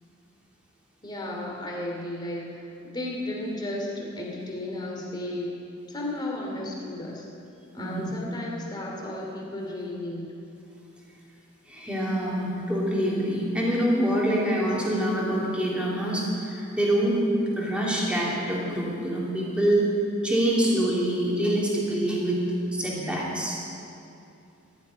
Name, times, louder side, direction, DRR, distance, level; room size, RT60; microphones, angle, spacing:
voice 1, 1.0-5.6 5.9-7.3 7.7-10.3, left 1 dB, 20° left, -2 dB, 2.6 m, -34 dB
voice 2, 7.8-8.1 11.7-17.3 17.6-19.9 20.2-22.4 22.7-23.6, right 1 dB, 5° right, -5 dB, 3.0 m, -25 dB
14.5 x 7.7 x 9.7 m, 2.7 s
head